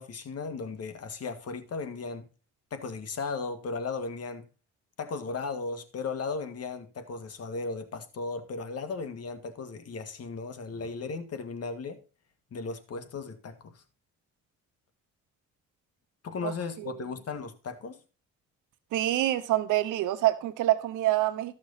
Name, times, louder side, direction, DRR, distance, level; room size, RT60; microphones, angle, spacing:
voice 1, 0.0-2.3 2.7-4.5 5.0-12.0 12.5-13.8 16.2-18.0, left 4 dB, 55° left, 1.9 m, -36 dB
voice 2, 18.9-21.5, right 14 dB, 90° right, 1.1 m, -26 dB
13.5 x 6.4 x 4.1 m
cardioid pair, 90°, 30 cm